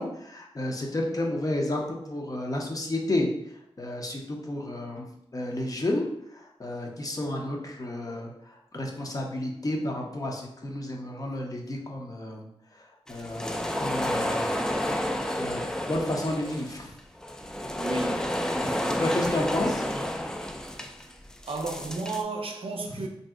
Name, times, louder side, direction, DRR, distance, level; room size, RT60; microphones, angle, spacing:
voice 1, 0.0-3.3 3.8-12.5 12.7-14.6 15.3-17.0 18.6-19.8 22.9-23.1, left 1 dB, 35° left, 0.6 m, -31 dB
sound 1, 13.1-22.2, left 1 dB, 5° left, 0.3 m, -30 dB
voice 2, 17.8-18.3 21.5-23.1, right 3 dB, 65° right, 0.5 m, -32 dB
2.6 x 2.0 x 3.5 m
cardioid pair, 50°, 10 cm